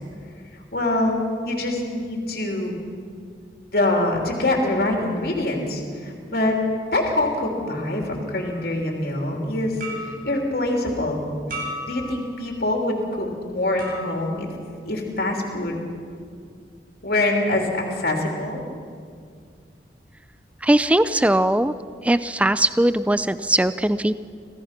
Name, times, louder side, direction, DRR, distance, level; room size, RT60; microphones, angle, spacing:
voice 1, 0.7-1.2 1.4-2.7 3.7-6.5 6.9-9.7 10.0-11.2 11.9-14.5 14.8-15.8 17.0-18.6, left 1 dB, 60° left, 1 dB, 3.2 m, -24 dB
sound 1, 8.4-8.6 9.8-10.3 11.5-12.4 13.8-14.4, equal, 50° right, 7.3 m, -35 dB
voice 2, 20.6-21.7 22.0-24.1, right 1 dB, 5° right, 14 dB, 0.4 m, -20 dB
26.0 x 17.0 x 6.0 m, 2.2 s
head